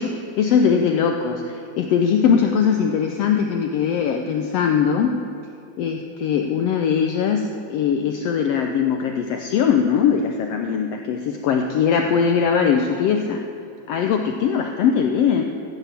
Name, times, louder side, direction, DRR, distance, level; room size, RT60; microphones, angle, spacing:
voice 1, 0.0-5.1 5.8-13.4 13.9-15.4, left 7 dB, 80° left, 4 dB, 1.4 m, -20 dB
14.0 x 8.7 x 7.5 m, 2.6 s
omnidirectional pair, 3.5 m